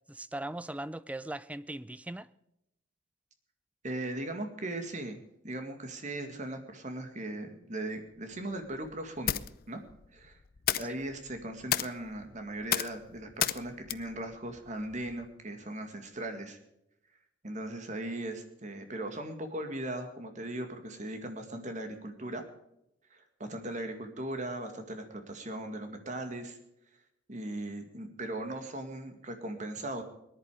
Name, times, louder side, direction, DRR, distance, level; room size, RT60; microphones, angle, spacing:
voice 1, 0.1-2.3 10.8-10.9, right 1 dB, 5° right, 0.4 m, -39 dB
voice 2, 3.8-9.4 9.7-9.8 10.1-10.4 10.7-16.6 17.4-22.4 23.1-26.6 27.3-30.0, right 1 dB, 40° right, 2.1 m, -38 dB
sound 1, 8.1-15.3, left 11 dB, 50° left, 0.5 m, -36 dB
19.0 x 11.0 x 5.0 m
head